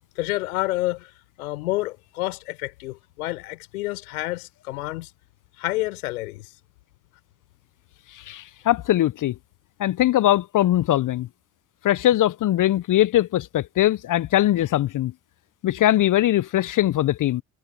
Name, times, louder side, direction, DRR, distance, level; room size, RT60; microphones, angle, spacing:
voice 1, 0.2-1.1 1.4-5.1 5.6-6.5, left 19 dB, 80° left, 4.6 m, -29 dB
voice 2, 8.1-9.3 9.8-11.3 11.8-15.1 15.6-17.4, left 13 dB, 45° left, 0.9 m, -21 dB
hypercardioid pair, 55°, 43 cm